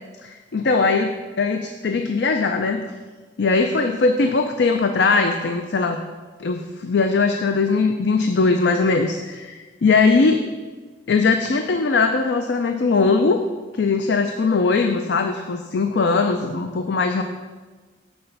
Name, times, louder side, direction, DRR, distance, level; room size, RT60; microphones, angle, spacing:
voice 1, 0.2-2.8 3.4-6.0 6.4-10.5 11.1-13.4 13.7-17.2, left 4 dB, 65° left, 6 dB, 0.4 m, -20 dB
7.9 x 4.3 x 6.8 m, 1.4 s
head